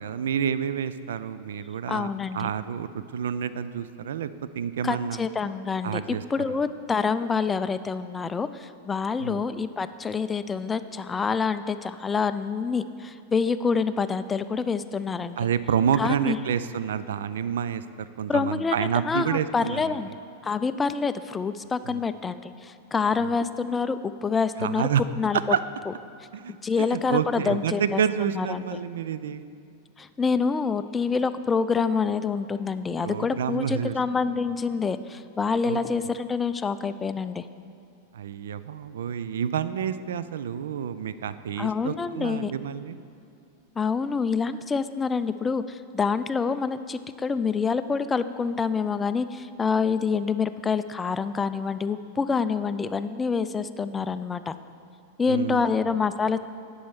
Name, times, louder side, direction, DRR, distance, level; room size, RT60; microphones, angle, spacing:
voice 1, 0.0-2.1 2.3-4.3 4.6-5.2 5.8-6.6 9.2-9.4 15.4-20.0 21.9-22.0 23.2-23.3 24.6-25.0 25.5-25.6 26.3-29.4 33.0-33.9 35.6-35.8 38.1-43.0 55.3-55.9, right 8 dB, 60° right, 14 dB, 0.3 m, -29 dB
voice 2, 1.9-2.5 4.8-15.4 16.0-16.4 18.3-20.1 20.4-24.9 25.2-25.4 26.5-28.0 28.3-28.8 30.0-37.4 41.6-42.5 43.8-54.5 55.2-56.4, left 5 dB, 15° left, 12 dB, 0.3 m, -27 dB
10.0 x 5.4 x 6.2 m, 2.5 s
figure-of-eight pair, 90°, 0 cm